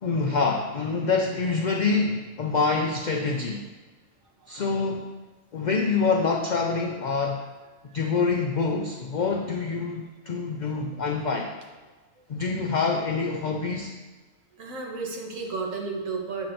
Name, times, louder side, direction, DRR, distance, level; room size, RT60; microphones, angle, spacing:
voice 1, 0.0-3.7 4.5-5.1 5.5-7.4 7.9-11.5 12.3-13.9, left 4 dB, 80° left, 2 dB, 0.4 m, -26 dB
voice 2, 14.6-16.5, right 4 dB, 85° right, 0 dB, 1.4 m, -32 dB
7.8 x 2.6 x 5.8 m, 1.3 s
omnidirectional pair, 1.3 m